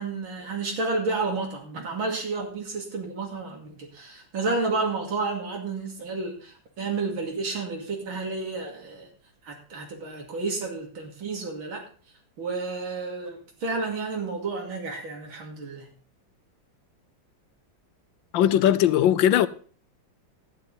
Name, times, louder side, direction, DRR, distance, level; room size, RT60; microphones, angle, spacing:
voice 1, 0.0-9.1 9.4-11.9 12.4-15.9, right 3 dB, 80° right, 3.2 m, -31 dB
voice 2, 18.3-19.5, left 11 dB, 75° left, 1.3 m, -19 dB
12.5 x 9.5 x 4.0 m
omnidirectional pair, 2.1 m